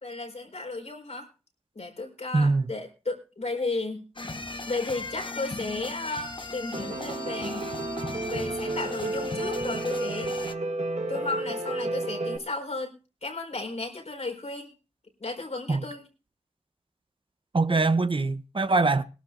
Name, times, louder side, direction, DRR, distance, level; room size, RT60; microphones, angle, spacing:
voice 1, 0.0-1.3 1.7-4.0 4.7-7.7 8.2-10.5 11.1-14.7 15.2-16.1, left 3 dB, 75° left, 4.6 m, -34 dB
voice 2, 2.3-2.6 15.7-15.8 17.5-19.0, right 3 dB, 50° right, 0.8 m, -23 dB
sound 1, 4.2-10.5, left 2 dB, 45° left, 1.1 m, -37 dB
Piano, 6.7-12.4, right 2 dB, 80° right, 1.5 m, -32 dB
22.0 x 12.5 x 2.6 m
wide cardioid pair, 65°, 11 cm